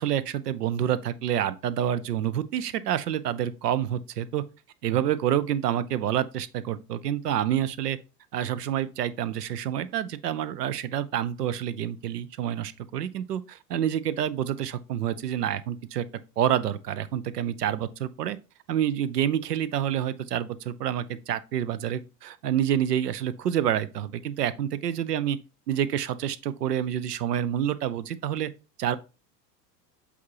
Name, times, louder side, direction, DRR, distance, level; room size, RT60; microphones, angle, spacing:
voice 1, 0.0-4.4 4.8-8.0 8.3-16.1 16.4-18.4 18.7-25.4 25.7-28.5 28.8-29.0, right 10 dB, 70° right, 0.7 m, -28 dB
8.3 x 4.2 x 2.9 m
figure-of-eight pair, 75°, 50 cm